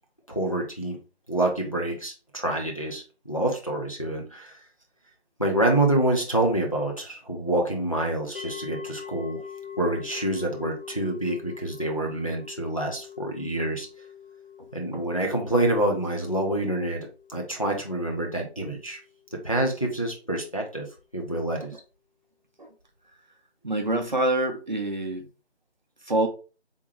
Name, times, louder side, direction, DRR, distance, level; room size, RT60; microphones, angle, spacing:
voice 1, 0.3-1.0 1.3-4.6 5.4-9.4 9.8-13.9 14.7-19.0 19.4-20.9 21.1-21.7, right 1 dB, 30° left, 0.5 m, -27 dB
sound 1, 8.3-19.5, left 7 dB, 55° left, 0.9 m, -44 dB
voice 2, 23.6-25.3 26.0-26.3, right 2 dB, 45° right, 0.6 m, -26 dB
3.6 x 2.6 x 3.1 m
figure-of-eight pair, 170°, 33 cm